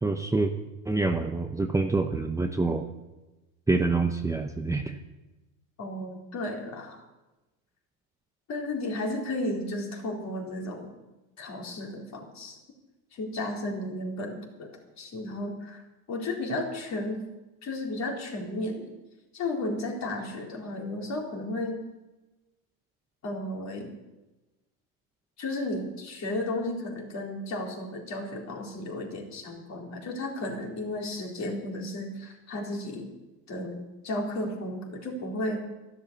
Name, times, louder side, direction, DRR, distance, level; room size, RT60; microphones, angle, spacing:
voice 1, 0.0-0.5 0.9-2.8 3.7-4.9, right 3 dB, 5° right, 4 dB, 0.8 m, -26 dB
voice 2, 5.8-7.0 8.5-10.9 11.4-12.6 13.1-14.7 15.0-15.8 16.1-17.2 17.6-18.9 19.3-21.8 23.2-23.9 25.4-33.1 33.5-35.6, left 1 dB, 40° left, 0 dB, 4.2 m, -33 dB
12.5 x 12.5 x 7.1 m, 1.1 s
supercardioid pair, 100°, 43 cm